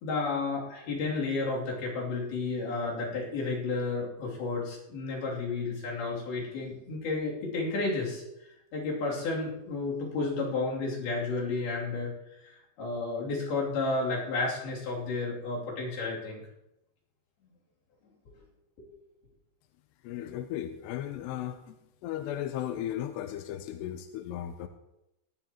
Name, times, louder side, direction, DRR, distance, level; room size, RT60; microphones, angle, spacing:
voice 1, 0.0-8.2 8.7-12.1 12.4-16.4 18.8-18.9 20.2-20.3, left 3 dB, 60° left, -3 dB, 4.8 m, -32 dB
voice 2, 20.0-21.8 22.0-24.7, left 11 dB, 80° left, 7 dB, 2.7 m, -36 dB
19.0 x 13.0 x 3.0 m, 0.87 s
omnidirectional pair, 5.0 m